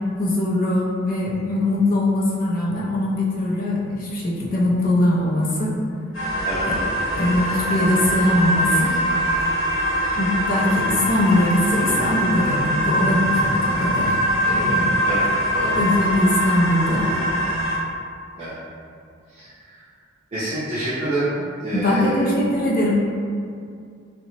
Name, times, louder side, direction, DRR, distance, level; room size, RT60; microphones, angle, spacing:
voice 1, 0.2-5.7 6.6-6.8 7.1-8.9 10.2-14.1 14.4-15.0 15.6-17.2 21.7-22.9, left 1 dB, 45° left, -5 dB, 0.6 m, -21 dB
sound 1, 6.1-17.8, equal, 85° left, 0.7 m, -23 dB
voice 2, 20.3-21.3 21.6-22.3, right 1 dB, 35° right, -12 dB, 0.6 m, -26 dB
2.8 x 2.1 x 2.8 m, 2.3 s
head